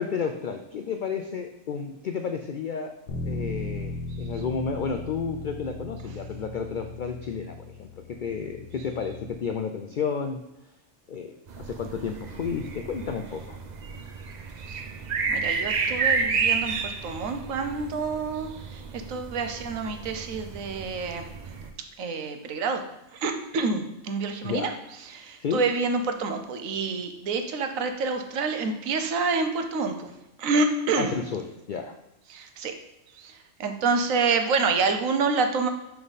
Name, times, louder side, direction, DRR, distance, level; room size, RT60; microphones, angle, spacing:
voice 1, 0.0-2.9 3.2-10.4 11.1-13.6 24.4-24.8 25.4-25.6 31.0-31.9, left 6 dB, 90° left, 5 dB, 0.4 m, -32 dB
Bass guitar, 3.1-9.3, left 2 dB, 65° left, 1.2 m, -37 dB
sound 1, 11.5-21.7, right 5 dB, 50° right, 0.5 m, -31 dB
voice 2, 15.3-18.8 19.1-21.3 22.0-22.8 23.1-24.7 25.1-30.1 30.4-31.1 32.3-32.7 33.2-35.7, right 4 dB, 75° right, 6 dB, 1.2 m, -27 dB
5.8 x 5.3 x 4.0 m, 0.92 s
omnidirectional pair, 1.4 m